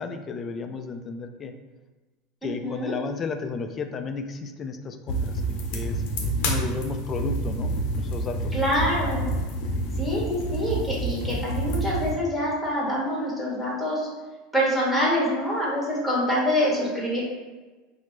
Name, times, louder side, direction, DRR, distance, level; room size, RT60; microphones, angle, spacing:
voice 1, 0.0-1.5 2.4-6.0 6.4-8.6, left 5 dB, 30° left, 7 dB, 0.3 m, -33 dB
voice 2, 2.4-2.9 8.5-9.3 10.0-14.1 14.5-17.2, equal, ahead, -5 dB, 1.2 m, -25 dB
sound 1, 5.1-12.1, right 1 dB, 65° left, 0.7 m, -28 dB
4.2 x 2.0 x 3.1 m, 1.2 s
supercardioid pair, 115°, 0 cm